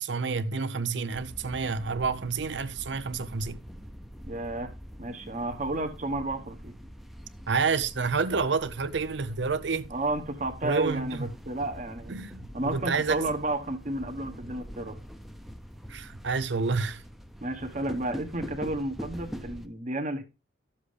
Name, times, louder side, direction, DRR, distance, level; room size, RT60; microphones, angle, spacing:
voice 1, 0.0-3.6 7.5-9.9 10.6-11.3 12.1-13.2 15.9-17.0, right 4 dB, 65° right, 0.7 m, -29 dB
sound 1, 1.1-19.7, equal, ahead, 0.7 m, -44 dB
voice 2, 4.3-4.7 5.0-6.7 9.9-12.1 12.5-15.0 17.4-20.2, right 2 dB, 40° right, 1.3 m, -32 dB
13.0 x 7.3 x 3.4 m
head